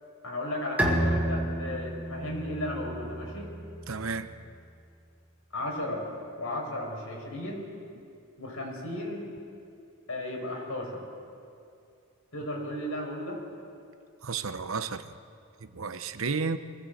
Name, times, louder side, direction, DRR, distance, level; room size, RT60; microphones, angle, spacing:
voice 1, 0.2-3.5 5.5-6.1 6.4-7.7 8.4-9.2 10.1-11.0 12.3-13.4, left 1 dB, 75° left, 0 dB, 5.3 m, -34 dB
Bowed string instrument, 0.8-4.3, right 1 dB, 5° right, 2.1 m, -31 dB
voice 2, 3.9-4.3 14.2-15.1 15.7-16.6, right 5 dB, 70° right, 11 dB, 0.9 m, -32 dB
23.5 x 16.5 x 7.9 m, 2.4 s
head